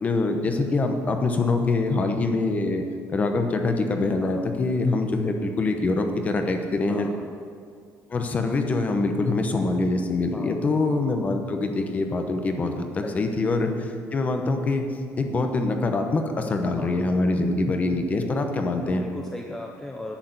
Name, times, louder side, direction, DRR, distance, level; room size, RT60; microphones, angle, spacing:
voice 1, 0.0-2.8 3.1-7.1 8.1-14.9 15.2-19.0, left 3 dB, 25° left, 5 dB, 0.9 m, -24 dB
voice 2, 6.9-7.3 10.3-10.6 13.0-13.3 16.8-17.0 18.8-20.2, left 1 dB, 10° left, 1 dB, 0.6 m, -37 dB
10.0 x 6.6 x 8.0 m, 2.3 s
cardioid pair, 165°, 6 cm